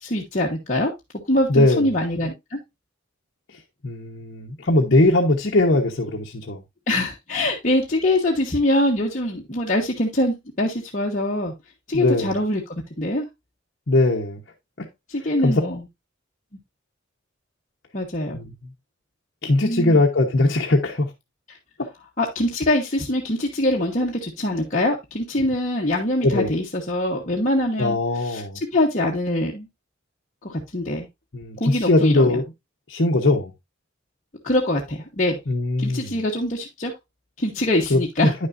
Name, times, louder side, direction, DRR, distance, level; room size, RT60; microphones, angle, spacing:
voice 1, 0.0-0.9 1.3-2.6 6.9-11.5 11.9-13.2 15.1-15.8 17.9-18.4 19.6-20.0 21.5-21.6 22.2-28.4 28.7-29.7 30.4-31.1 31.6-32.4 34.4-35.4 35.8-36.9 37.4-38.3, left 1 dB, 40° left, 1.2 m, -23 dB
voice 2, 1.5-1.9 3.8-6.6 11.9-12.3 13.9-14.4 14.8-14.9 15.4-15.5 18.3-18.5 19.4-21.1 21.8-21.9 26.2-26.5 27.8-28.6 31.3-32.4 32.9-33.5 35.5-36.2 37.9-38.3, left 2 dB, 55° left, 1.1 m, -20 dB
9.8 x 6.4 x 2.6 m
head